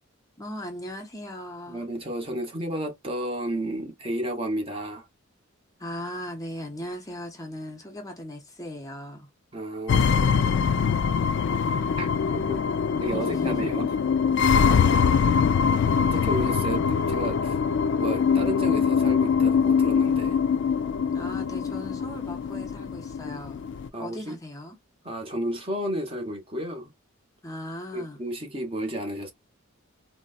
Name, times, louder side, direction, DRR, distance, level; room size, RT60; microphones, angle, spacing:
voice 1, 0.4-1.9 5.8-9.3 13.1-13.8 14.5-15.2 21.1-23.6 24.0-24.8 27.4-28.2, left 1 dB, 15° left, 0.6 m, -38 dB
voice 2, 1.7-5.1 9.5-10.1 12.0-12.7 13.0-13.9 16.1-17.6 18.0-20.4 23.9-24.4 25.0-26.9 27.9-29.3, right 1 dB, 25° right, 0.9 m, -32 dB
sound 1, 9.9-23.9, left 6 dB, 60° left, 0.3 m, -23 dB
3.9 x 2.1 x 2.4 m
head